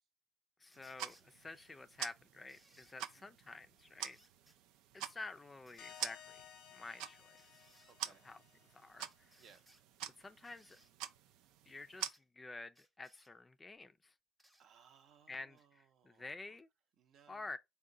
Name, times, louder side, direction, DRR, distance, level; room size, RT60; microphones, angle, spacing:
voice 1, 0.6-4.2 4.9-6.4 6.7-7.4 8.2-8.4 8.7-9.3 10.2-10.8 11.7-14.1 15.3-16.7 17.3-17.6, left 3 dB, 20° left, 0.3 m, -50 dB
sound 1, 0.6-1.3 2.5-3.0 4.1-4.6 5.7-6.1 7.4-8.0 9.1-9.8 10.4-10.9 12.0-12.2 12.7-13.3 14.4-14.7 15.6-15.7, right 1 dB, 5° right, 0.8 m, -67 dB
sound 2, 0.7-12.1, right 10 dB, 80° right, 0.3 m, -48 dB
sound 3, 5.8-9.2, left 9 dB, 80° left, 0.5 m, -58 dB
voice 2, 7.9-8.3 9.4-9.7 14.6-16.5 17.0-17.5, right 7 dB, 65° right, 0.7 m, -65 dB
3.7 x 2.2 x 3.7 m
supercardioid pair, 80°, 0 cm